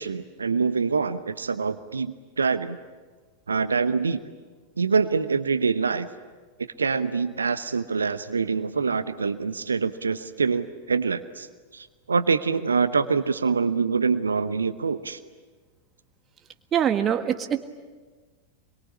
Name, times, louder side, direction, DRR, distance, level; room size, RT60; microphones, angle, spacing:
voice 1, 0.0-2.8 3.5-4.2 4.8-6.1 6.8-11.5 11.7-15.2, right 5 dB, 75° right, 12 dB, 0.9 m, -25 dB
voice 2, 16.7-17.6, right 9 dB, 25° right, 6 dB, 1.7 m, -23 dB
26.0 x 22.5 x 9.8 m, 1.4 s
figure-of-eight pair, 90°, 0 cm